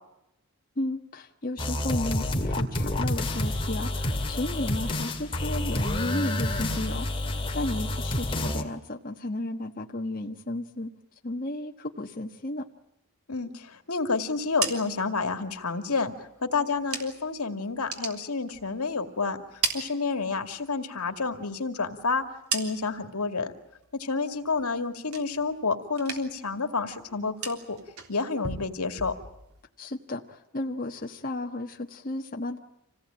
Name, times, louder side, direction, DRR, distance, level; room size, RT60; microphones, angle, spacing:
voice 1, 0.8-7.1 7.5-10.9 11.2-12.7 29.8-32.6, left 1 dB, 40° left, 1 dB, 1.4 m, -33 dB
sound 1, 1.6-8.6, left 1 dB, 25° left, 2.3 m, -29 dB
voice 2, 13.3-16.1 16.4-19.4 19.7-22.2 22.5-23.5 23.9-27.8 28.1-29.1, left 4 dB, 80° left, 7 dB, 2.3 m, -29 dB
sound 2, 14.3-17.4 17.7-19.0 19.3-20.7 21.0-23.1 23.5-24.0 24.3-25.6 25.9-26.5 26.8-29.6, right 5 dB, 85° right, 3.5 m, -37 dB
27.0 x 18.0 x 8.9 m, 0.89 s
head